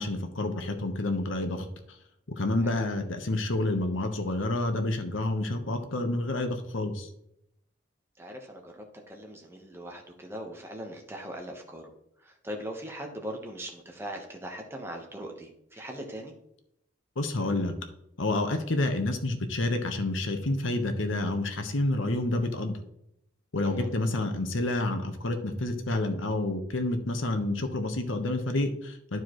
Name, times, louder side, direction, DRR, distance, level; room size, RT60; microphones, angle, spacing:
voice 1, 0.0-1.7 2.4-7.1 17.2-17.7 18.2-22.8 23.5-29.2, left 2 dB, 85° left, 6 dB, 1.1 m, -29 dB
voice 2, 8.2-11.9 12.2-16.3 23.6-23.9, equal, 10° right, 2 dB, 1.1 m, -40 dB
12.0 x 4.6 x 3.1 m, 0.77 s
head